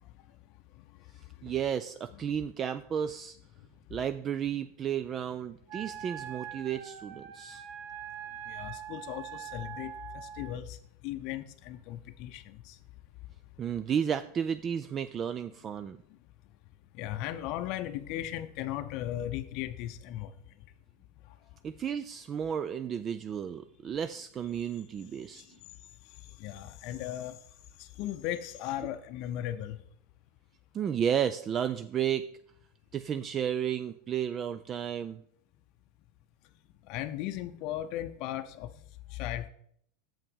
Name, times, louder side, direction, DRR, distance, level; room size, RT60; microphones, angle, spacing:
voice 1, 1.4-3.4 3.9-7.6 13.6-16.0 21.6-25.5 30.7-32.3 32.9-35.2, right 8 dB, 35° right, 11 dB, 0.3 m, -32 dB
Wind instrument woodwind instrument, 5.7-10.6, right 9 dB, 60° right, 1.0 m, -43 dB
voice 2, 8.5-10.8 11.0-12.8 17.0-20.3 25.3-25.4 26.4-27.4 27.8-29.8 36.9-38.7 39.1-39.5, left 12 dB, 55° left, 9 dB, 0.6 m, -37 dB
7.2 x 5.6 x 5.4 m, 0.67 s
hypercardioid pair, 100°, 0 cm